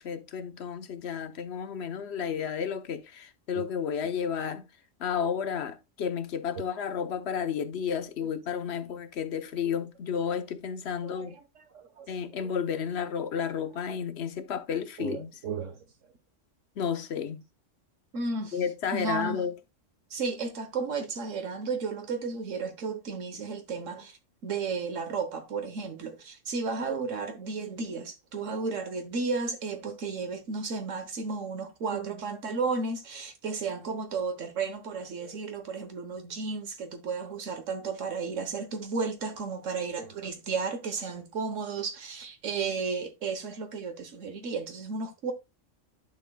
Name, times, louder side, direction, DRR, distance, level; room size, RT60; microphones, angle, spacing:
voice 1, 0.0-4.6 5.0-11.3 12.1-15.3 16.8-17.4 18.5-19.6, left 7 dB, 60° left, 1.1 m, -32 dB
voice 2, 11.0-12.1 12.4-12.5 15.0-15.8 18.1-18.6 18.9-19.4 20.1-45.3, right 4 dB, 80° right, 1.4 m, -33 dB
11.0 x 7.2 x 2.3 m
omnidirectional pair, 1.3 m